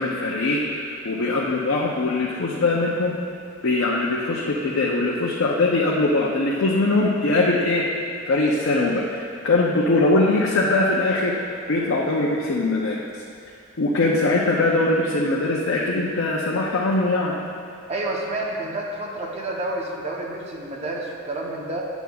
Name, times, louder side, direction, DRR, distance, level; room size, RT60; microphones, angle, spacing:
voice 1, 0.0-3.2 3.6-7.9 8.3-11.4 11.7-13.2 13.8-17.3, left 2 dB, 70° left, -3 dB, 0.6 m, -21 dB
voice 2, 17.9-21.9, right 2 dB, 30° right, -1 dB, 0.8 m, -29 dB
9.1 x 8.0 x 2.3 m, 2.4 s
head